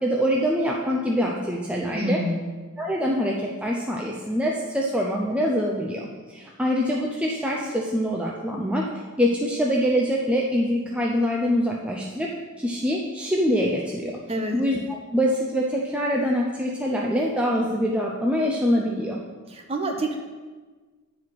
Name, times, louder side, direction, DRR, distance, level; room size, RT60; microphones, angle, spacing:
voice 1, 0.0-2.2 2.8-12.3 12.6-14.2 14.5-19.2, equal, 5° right, -2 dB, 0.5 m, -24 dB
voice 2, 1.9-2.4 14.3-14.6 19.5-20.2, right 1 dB, 30° right, 2 dB, 0.9 m, -27 dB
9.3 x 4.8 x 5.8 m, 1.4 s
head